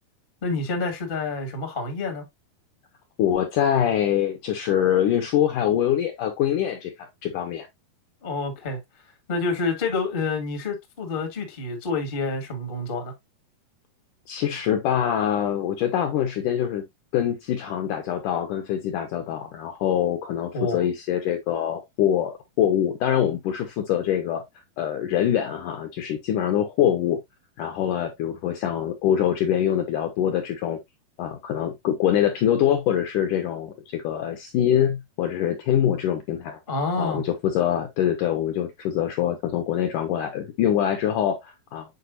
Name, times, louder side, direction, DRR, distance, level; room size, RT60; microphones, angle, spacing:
voice 1, 0.4-2.2 8.2-8.8 9.3-13.1 20.5-20.8 36.7-37.2, left 3 dB, 55° left, 0.5 m, -28 dB
voice 2, 3.2-7.7 14.3-16.8 17.1-24.4 24.8-27.2 27.6-30.8 31.2-36.6 37.0-41.9, left 10 dB, 80° left, 1.9 m, -24 dB
8.2 x 4.7 x 2.5 m
omnidirectional pair, 4.6 m